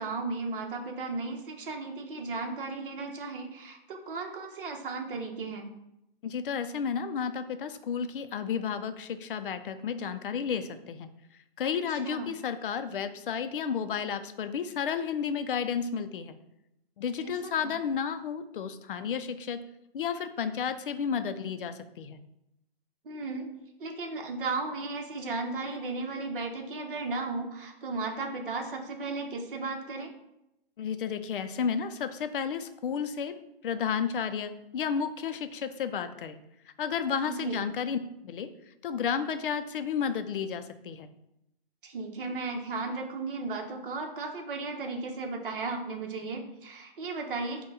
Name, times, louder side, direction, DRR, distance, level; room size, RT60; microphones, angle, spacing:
voice 1, 0.0-5.7 11.7-12.3 17.2-17.7 23.0-23.5 23.8-30.1 37.2-37.6 41.8-47.6, right 3 dB, 60° right, 3 dB, 1.0 m, -35 dB
voice 2, 6.2-11.1 11.6-16.3 17.0-19.6 19.9-22.2 30.8-33.3 33.6-36.4 36.8-38.0 38.2-38.5 38.8-41.1, left 7 dB, 60° left, 10 dB, 0.5 m, -32 dB
5.4 x 2.3 x 4.0 m, 0.85 s
hypercardioid pair, 160°, 30 cm